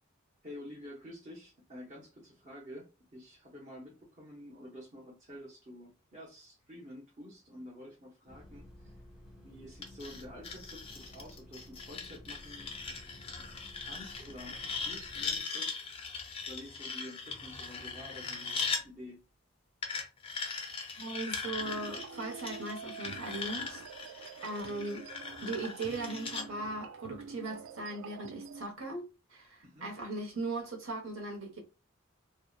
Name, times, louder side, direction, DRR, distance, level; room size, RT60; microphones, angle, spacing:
voice 1, 0.4-8.9 9.4-12.7 13.8-14.6 14.8-15.7 16.4-19.2 29.6-29.9, left 1 dB, 35° right, 0.6 m, -49 dB
sound 1, 8.3-15.4, left 1 dB, ahead, 0.8 m, -54 dB
sound 2, 9.8-18.8 19.8-26.5, left 5 dB, 25° left, 0.4 m, -40 dB
voice 2, 21.0-23.8 24.4-25.1 25.4-29.0 29.3-31.6, right 2 dB, 70° right, 0.9 m, -38 dB
sound 3, 21.6-28.7, right 5 dB, 85° right, 0.3 m, -47 dB
2.6 x 2.1 x 2.3 m
head